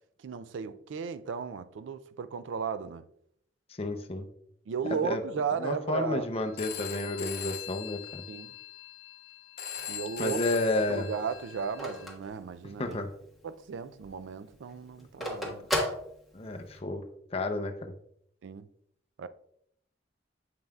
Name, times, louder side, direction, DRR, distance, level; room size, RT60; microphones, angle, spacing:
voice 1, 0.2-3.0 4.7-6.3 8.3-8.5 9.9-10.4 10.9-13.0 13.4-15.6 18.4-18.7 19.2-19.3, right 6 dB, 85° right, 0.4 m, -35 dB
voice 2, 3.8-4.3 5.0-5.2 5.6-8.2 10.2-11.1 12.8-13.1 16.3-17.0 17.3-17.9, left 2 dB, 30° left, 0.6 m, -31 dB
Telephone, 6.6-12.1, left 9 dB, 55° left, 0.9 m, -41 dB
Telephone 2, 9.8-13.2 13.6-13.7 13.9-16.8, left 1 dB, ahead, 1.2 m, -35 dB
7.6 x 5.4 x 2.3 m
head